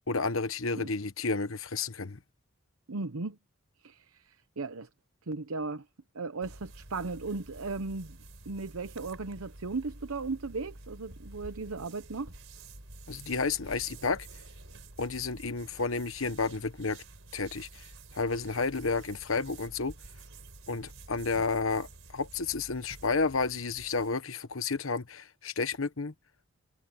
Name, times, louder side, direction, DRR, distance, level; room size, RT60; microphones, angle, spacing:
voice 1, 0.1-2.2 13.1-14.3 15.0-17.0 17.3-17.8 18.1-19.9 20.7-21.9 22.1-26.1, left 4 dB, 70° left, 1.2 m, -31 dB
voice 2, 2.9-3.4 3.8-4.9 5.3-5.8 6.1-8.2 8.5-12.3, right 3 dB, 85° right, 0.9 m, -36 dB
sound 1, 6.4-24.2, right 2 dB, 70° right, 4.4 m, -49 dB
head